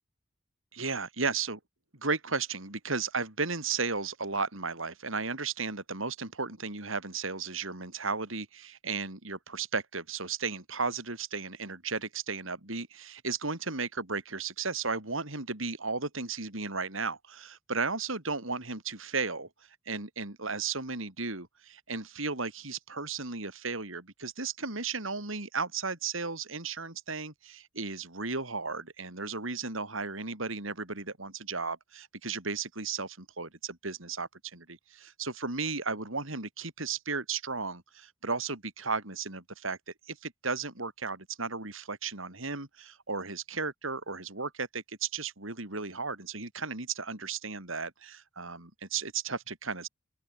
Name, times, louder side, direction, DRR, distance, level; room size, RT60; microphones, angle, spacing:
voice 1, 0.7-1.6 1.9-19.5 19.9-39.8 40.1-49.9, right 4 dB, 85° right, 4.9 m, -35 dB
open air
head